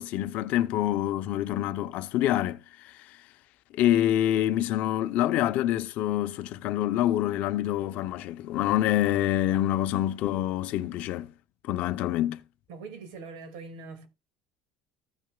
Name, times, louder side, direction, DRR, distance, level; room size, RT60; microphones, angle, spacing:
voice 1, 0.0-3.2 3.7-11.3 11.6-12.4, left 13 dB, 55° left, 0.6 m, -26 dB
voice 2, 12.7-14.1, right 4 dB, 80° right, 2.1 m, -42 dB
15.0 x 6.2 x 2.2 m
cardioid pair, 160°, 3 cm